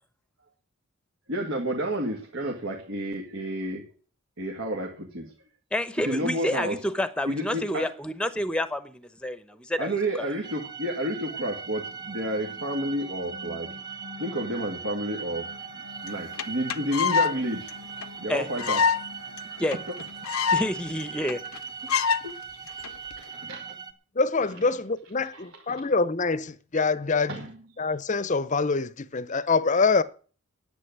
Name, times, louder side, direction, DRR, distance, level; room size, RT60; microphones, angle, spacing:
voice 1, 1.3-3.9 4.4-5.3 6.0-6.8 7.3-7.9 9.8-13.8 14.2-17.7 18.2-18.8 19.5-19.6 21.8-22.3 22.8-23.8 25.2-25.8 27.3-27.6 29.7-29.8, right 1 dB, 65° right, 2.1 m, -31 dB
voice 2, 5.7-9.9 18.3-18.5 19.6-19.8 20.5-21.4, left 1 dB, 5° left, 0.9 m, -29 dB
sound 1, 10.4-23.9, right 6 dB, 20° right, 1.2 m, -40 dB
sound 2, 11.4-22.0, left 2 dB, 80° right, 2.7 m, -49 dB
sound 3, 16.1-16.2 16.4-16.5 16.7-17.3 17.7-17.8 18.0-18.1 18.6-19.0 19.4-19.5 19.7-19.8 20.0-20.7 21.0-21.1 21.3-21.6 21.9-22.2 22.8-23.1, left 6 dB, 80° left, 0.6 m, -24 dB
voice 3, 24.2-27.4 27.8-30.0, left 4 dB, 35° left, 0.7 m, -25 dB
10.0 x 8.7 x 9.4 m
head